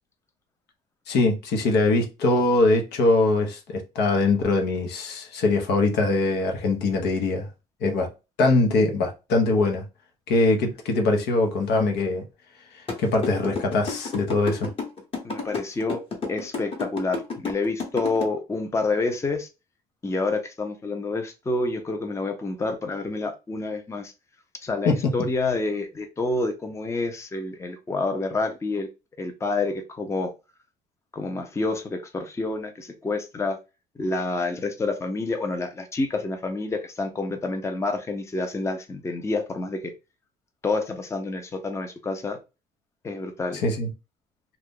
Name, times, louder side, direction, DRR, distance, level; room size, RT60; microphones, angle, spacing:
voice 1, 1.1-7.5 7.8-8.1 8.4-9.8 10.3-12.2 13.0-14.7 24.8-25.1 43.5-43.9, left 2 dB, 75° left, 0.9 m, -22 dB
sound 1, 12.9-18.2, left 4 dB, 35° left, 1.1 m, -30 dB
voice 2, 15.2-16.0 16.3-19.5 20.0-24.1 24.6-28.9 29.2-30.3 31.1-33.6 34.0-39.9 40.6-42.4 43.0-43.6, left 3 dB, 15° left, 0.6 m, -28 dB
2.7 x 2.4 x 3.6 m
cardioid pair, 110°, 17 cm